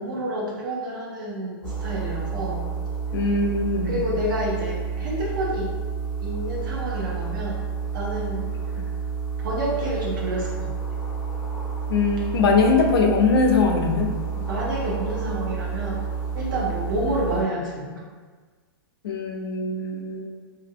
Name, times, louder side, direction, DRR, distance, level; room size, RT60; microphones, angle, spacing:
voice 1, 0.0-2.6 3.8-5.8 6.2-7.6 7.9-8.9 9.4-10.7 14.4-16.1 16.3-18.0, right 1 dB, 60° right, -4 dB, 0.6 m, -29 dB
sound 1, 1.6-17.4, right 6 dB, 15° left, 0.5 m, -30 dB
voice 2, 3.1-3.9 8.8-8.9 11.9-14.1 19.0-20.3, left 4 dB, 85° left, 2 dB, 0.5 m, -21 dB
2.7 x 2.6 x 2.5 m, 1.5 s
supercardioid pair, 175°, 12 cm